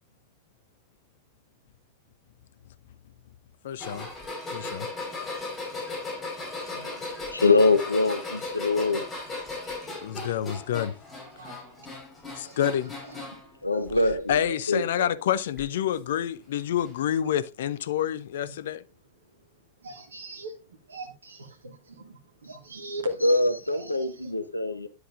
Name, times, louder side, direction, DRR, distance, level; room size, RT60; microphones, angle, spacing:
voice 1, 3.6-4.1 4.5-4.9 10.0-10.9 12.3-12.9 14.3-18.8, left 10 dB, 60° left, 0.5 m, -28 dB
sound 1, 3.8-13.5 13.9-14.4 15.6-15.7 16.8-16.9, left 2 dB, 20° left, 4.5 m, -37 dB
voice 2, 7.2-9.0 13.6-15.2 23.2-24.9, left 3 dB, 85° left, 0.8 m, -24 dB
voice 3, 11.3-12.6 13.0-13.7 18.4-18.5 19.8-23.2 23.7-24.3, equal, 70° right, 1.5 m, -40 dB
10.0 x 8.0 x 2.5 m
figure-of-eight pair, 90°, 0 cm